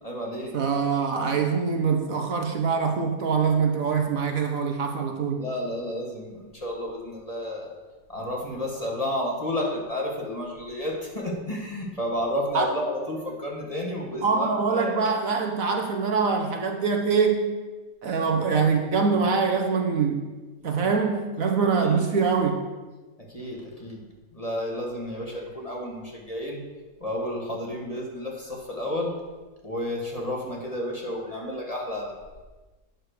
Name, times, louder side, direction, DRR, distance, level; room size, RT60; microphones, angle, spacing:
voice 1, 0.0-0.5 5.4-7.7 8.1-14.9 21.8-22.0 23.3-24.0 24.3-26.6 27.0-29.1 29.6-32.1, left 1 dB, 25° left, -2 dB, 1.7 m, -31 dB
voice 2, 0.5-5.5 12.5-12.7 14.2-17.5 18.0-20.3 20.6-22.6, right 5 dB, 60° right, 4 dB, 1.2 m, -24 dB
9.2 x 6.4 x 6.5 m, 1.3 s
omnidirectional pair, 1.7 m